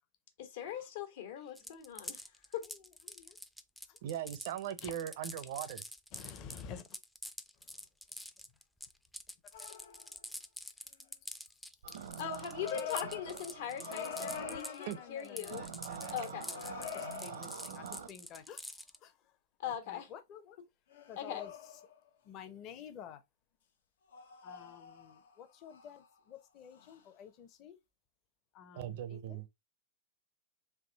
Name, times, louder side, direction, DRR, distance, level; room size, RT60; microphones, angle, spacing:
voice 1, 0.4-2.3 2.5-2.6 12.2-15.6 16.1-16.5 19.6-20.1 21.2-21.4, left 8 dB, 70° left, 1.4 m, -40 dB
voice 2, 1.4-1.8 2.6-3.4 3.9-4.0 4.8-4.9 6.1-7.0 7.6-7.8 9.6-9.7 11.9-12.0 14.3-19.4 19.6-20.6 21.1-21.8 22.2-23.2 24.4-27.8 28.5-29.4, left 8 dB, 35° left, 0.7 m, -51 dB
sound 1, 1.5-14.9 15.2-19.0, left 1 dB, ahead, 0.3 m, -46 dB
voice 3, 4.0-5.8 14.9-15.0 28.7-29.5, right 10 dB, 60° right, 0.5 m, -39 dB
sound 2, 9.5-10.2 12.5-15.7 16.0-17.7 20.9-22.0 24.1-25.3 25.7-26.1 26.8-26.9, left 7 dB, 90° left, 0.9 m, -46 dB
sound 3, 11.8-14.6 15.4-18.1, right 7 dB, 90° right, 0.8 m, -46 dB
3.5 x 2.7 x 3.9 m
supercardioid pair, 145°, 0 cm